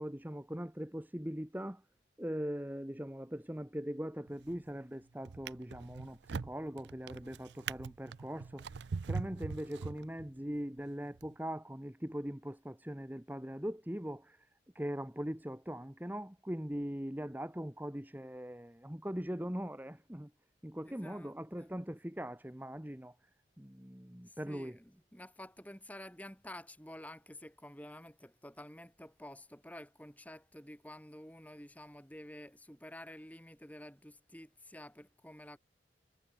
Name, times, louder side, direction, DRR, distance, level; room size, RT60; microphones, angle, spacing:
voice 1, 0.0-1.8 2.2-14.5 14.7-20.3 20.6-23.1 23.6-24.8, equal, 10° right, 1.2 m, -41 dB
Drawer open or close, 4.3-4.7 5.3-10.4 11.1-11.3, right 5 dB, 75° right, 0.5 m, -42 dB
voice 2, 20.8-21.7 24.3-35.6, left 1 dB, 10° left, 4.1 m, -50 dB
head